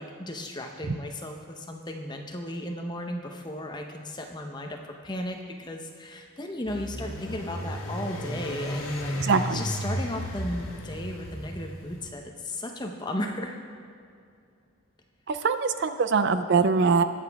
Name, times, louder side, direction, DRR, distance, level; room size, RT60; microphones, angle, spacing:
voice 1, 0.0-9.2 9.5-13.6 15.4-15.5, left 1 dB, 20° left, 3 dB, 0.8 m, -35 dB
sound 1, 6.7-12.1, equal, 80° left, 1.7 m, -34 dB
voice 2, 9.2-9.6 15.3-17.0, right 5 dB, 55° right, 10 dB, 0.4 m, -23 dB
20.0 x 7.2 x 3.5 m, 2.4 s
head